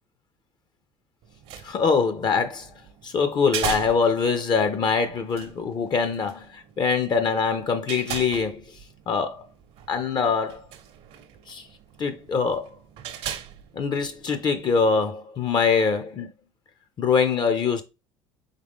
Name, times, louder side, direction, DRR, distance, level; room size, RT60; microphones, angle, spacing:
sound 1, 1.2-14.7, right 9 dB, 60° right, 0.7 m, -39 dB
voice 1, 1.6-2.7 3.0-8.6 9.1-9.4 9.9-10.6 11.5-11.7 12.0-12.7 13.7-16.3 17.0-17.8, left 5 dB, 40° left, 0.6 m, -23 dB
3.7 x 3.5 x 3.6 m
supercardioid pair, 90°, 11 cm